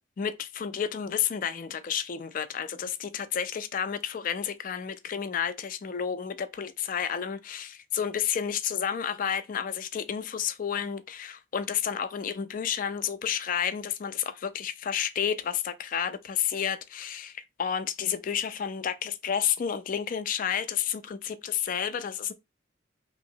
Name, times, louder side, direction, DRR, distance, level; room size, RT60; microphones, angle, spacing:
voice 1, 0.2-22.3, left 8 dB, 40° left, 0.3 m, -31 dB
2.9 x 2.9 x 2.7 m
head